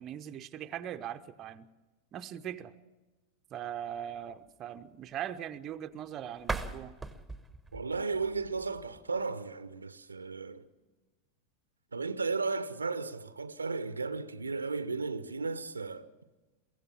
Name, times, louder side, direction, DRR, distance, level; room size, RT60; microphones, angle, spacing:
voice 1, 0.0-1.7 2.1-2.7 3.5-7.0, right 10 dB, 30° right, 0.8 m, -40 dB
sound 1, 6.4-9.2, right 3 dB, 5° right, 1.2 m, -40 dB
voice 2, 7.7-10.7 11.9-16.1, right 4 dB, 75° right, 0.8 m, -34 dB
23.0 x 16.0 x 7.3 m
figure-of-eight pair, 90°, 0 cm